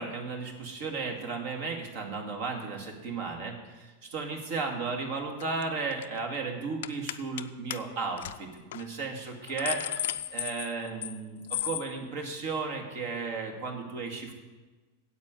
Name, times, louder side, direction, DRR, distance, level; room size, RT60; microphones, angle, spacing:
voice 1, 0.0-14.3, right 4 dB, 50° right, 3 dB, 2.2 m, -35 dB
sound 1, 5.4-5.6 5.9-6.2 6.8-7.4 7.7-7.8 8.2-8.3 8.7-8.8 9.3-11.2 11.5-11.9, left 13 dB, 55° left, 0.5 m, -34 dB
9.5 x 8.2 x 8.3 m, 1.3 s
figure-of-eight pair, 90°, 0 cm